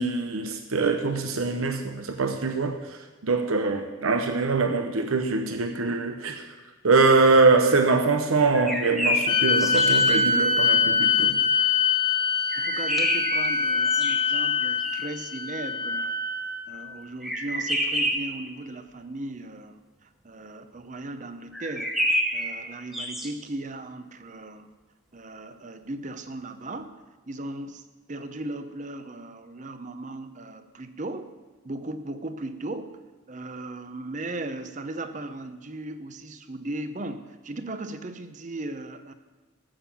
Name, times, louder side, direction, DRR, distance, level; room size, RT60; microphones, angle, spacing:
voice 1, 0.0-6.5 6.8-11.4, right 3 dB, 90° right, 6 dB, 0.8 m, -23 dB
sound 1, 8.5-10.2 12.5-15.2 17.2-18.4 21.5-23.3, equal, ahead, 0.9 m, -28 dB
sound 2, 9.3-16.8, left 5 dB, 25° left, 0.9 m, -24 dB
voice 2, 12.6-16.2 16.7-24.7 25.1-27.0 27.3-27.8 28.1-31.3 31.6-33.0 33.3-39.1, right 2 dB, 35° right, 10 dB, 0.7 m, -37 dB
13.5 x 7.5 x 7.0 m, 1.2 s
head